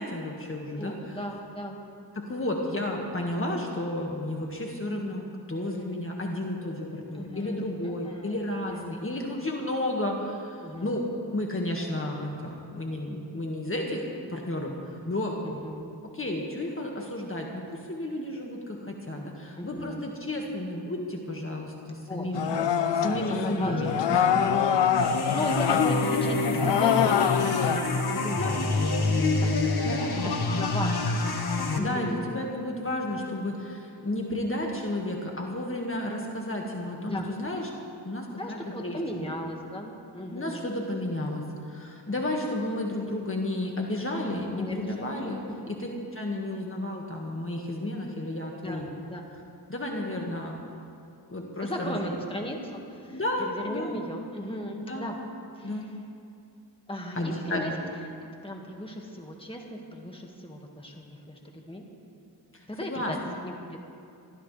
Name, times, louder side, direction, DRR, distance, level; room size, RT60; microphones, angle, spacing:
voice 1, 0.0-1.2 2.1-11.0 11.3-15.4 16.0-22.6 23.0-24.4 28.3-28.6 29.8-30.2 31.8-37.7 38.0-39.3 40.3-45.4 45.7-48.9 49.7-50.6 51.3-52.2 53.1-53.9 54.9-55.1 55.6-55.9 57.2-57.7 62.5-63.4, left 1 dB, 30° left, 0 dB, 1.8 m, -32 dB
voice 2, 0.8-1.8 7.1-8.3 8.7-8.9 10.6-11.0 15.4-15.9 19.6-20.0 22.1-22.7 23.0-24.0 24.4-29.7 30.2-31.1 31.8-32.3 37.0-37.3 38.4-40.7 44.6-45.7 48.5-49.2 51.6-55.2 55.6-55.9 56.9-57.7 58.3-61.4 61.7-61.8 62.7-63.2 63.4-63.8, left 1 dB, 15° left, 1 dB, 1.9 m, -37 dB
sound 1, 22.3-27.8, left 8 dB, 85° left, 0.8 m, -25 dB
sound 2, 24.9-31.8, left 3 dB, 60° left, 1.6 m, -27 dB
24.5 x 13.5 x 3.4 m, 2.5 s
cardioid pair, 70°, 42 cm